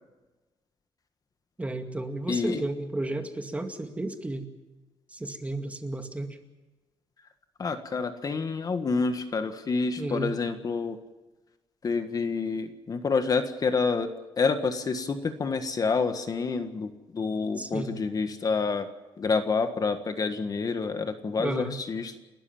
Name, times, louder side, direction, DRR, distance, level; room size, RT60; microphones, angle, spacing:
voice 1, 1.6-4.5 5.1-6.4 10.0-10.3 17.6-18.0 21.4-21.8, right 2 dB, 15° right, 6 dB, 2.2 m, -33 dB
voice 2, 2.3-2.6 7.6-11.0 11.8-14.1 14.4-18.9 19.2-22.2, left 4 dB, 40° left, 8 dB, 1.6 m, -28 dB
30.0 x 13.5 x 7.3 m, 1.1 s
cardioid pair, 115°, 10 cm